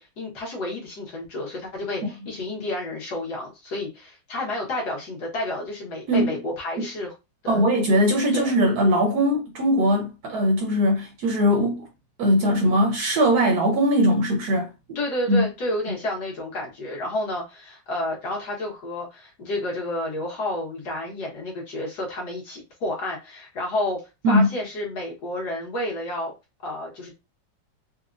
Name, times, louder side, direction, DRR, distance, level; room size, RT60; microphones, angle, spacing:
voice 1, 0.0-7.1 7.4-7.6 8.3-8.5 14.9-26.3 26.6-27.1, left 1 dB, 60° left, 1.6 m, -30 dB
voice 2, 7.5-11.9 12.2-14.7 15.3-15.5 24.2-24.5, equal, 65° right, 1.0 m, -20 dB
4.0 x 2.1 x 2.5 m
omnidirectional pair, 2.1 m